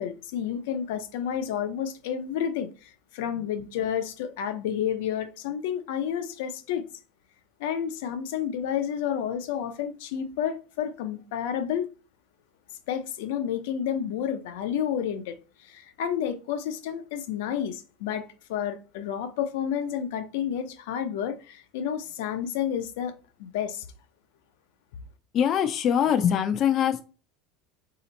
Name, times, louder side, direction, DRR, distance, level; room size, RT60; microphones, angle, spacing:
voice 1, 0.0-6.9 7.6-11.9 12.9-23.1 23.4-23.9, left 9 dB, 80° left, 0.6 m, -30 dB
voice 2, 25.3-27.0, left 9 dB, 40° left, 0.5 m, -23 dB
4.1 x 2.8 x 4.0 m
supercardioid pair, 135°, 0 cm